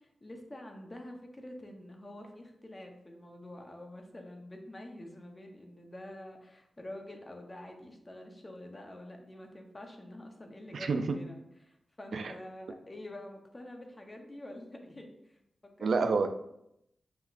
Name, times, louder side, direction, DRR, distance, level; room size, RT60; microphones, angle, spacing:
voice 1, 0.0-15.4 15.8-16.0, left 1 dB, 30° left, 3 dB, 0.8 m, -47 dB
voice 2, 10.7-11.2 12.1-12.3 15.8-16.3, right 4 dB, 70° right, 8 dB, 0.3 m, -28 dB
5.8 x 2.8 x 2.5 m, 0.79 s
cardioid pair, 65°, 0 cm